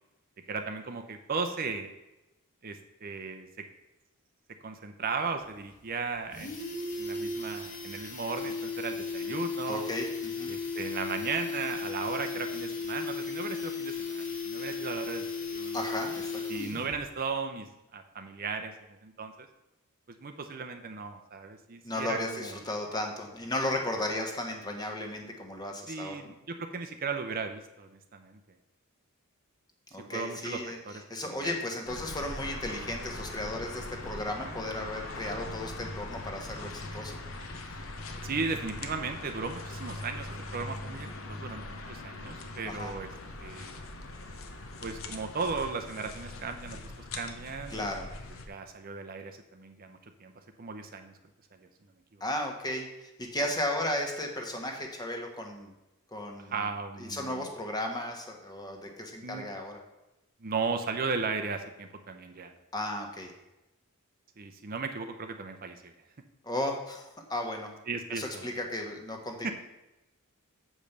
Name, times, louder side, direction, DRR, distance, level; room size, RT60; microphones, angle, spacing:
voice 1, 0.5-1.9 2.6-3.5 4.6-6.7 7.0-9.9 10.5-15.8 16.5-19.5 20.1-22.5 25.9-28.4 30.1-31.6 38.2-43.1 43.4-43.7 44.8-46.8 47.2-47.9 48.5-50.3 50.6-51.1 51.5-51.7 52.1-52.2 56.5-57.5 59.2-59.5 60.4-62.5 64.4-65.9 67.9-68.5 69.4-69.5, right 4 dB, 40° right, 6 dB, 0.6 m, -36 dB
sound 1, 5.4-5.5 5.8-5.9 6.2-17.0 17.3-17.4, left 4 dB, 40° left, 1.3 m, -36 dB
voice 2, 9.7-10.5 15.7-16.4 21.8-26.2 29.9-30.8 31.1-37.2 42.7-42.9 47.7-48.1 52.2-55.7 56.1-56.5 57.0-59.8 62.7-63.3 66.4-67.7 68.1-69.5, left 1 dB, 20° left, 3 dB, 1.2 m, -35 dB
sound 2, 31.9-48.5, left 2 dB, 65° left, 0.9 m, -41 dB
7.3 x 5.2 x 6.6 m, 0.96 s
head